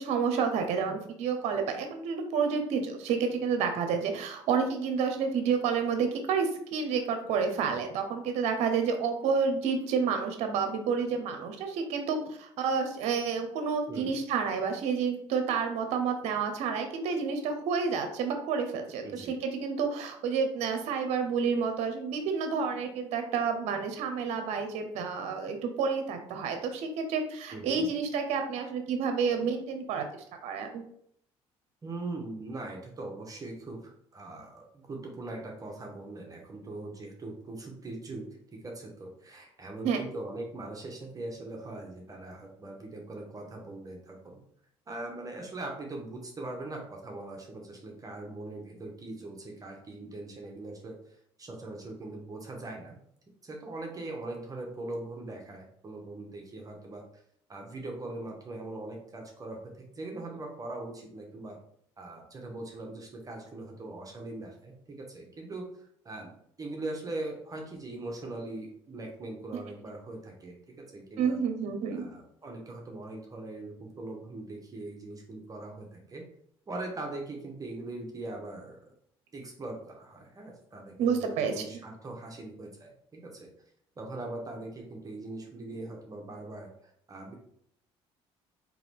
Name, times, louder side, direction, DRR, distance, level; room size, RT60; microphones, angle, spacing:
voice 1, 0.0-30.8 39.8-40.0 71.2-72.0 81.0-81.8, right 5 dB, 70° right, 6 dB, 0.7 m, -30 dB
voice 2, 19.0-19.4 27.5-27.9 31.8-38.2 38.5-44.4 44.9-51.0 51.4-53.0 53.4-57.0 57.5-61.6 62.0-66.3 66.6-71.4 71.9-76.3 76.7-78.8 79.3-83.5 84.0-87.4, right 2 dB, 30° right, 1 dB, 1.0 m, -41 dB
3.8 x 3.0 x 3.4 m, 0.68 s
supercardioid pair, 80°, 12 cm